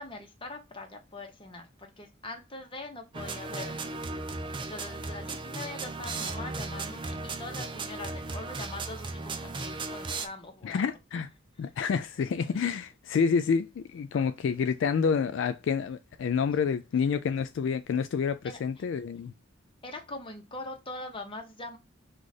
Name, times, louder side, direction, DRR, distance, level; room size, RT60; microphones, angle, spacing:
voice 1, 0.0-3.9 4.3-10.9 14.1-14.3 18.4-18.8 19.8-21.8, left 2 dB, 25° left, 1.0 m, -42 dB
sound 1, 3.1-10.3, right 3 dB, 25° right, 0.4 m, -36 dB
voice 2, 10.6-11.3 11.6-19.3, left 6 dB, 65° left, 0.3 m, -28 dB
4.8 x 2.5 x 4.1 m
head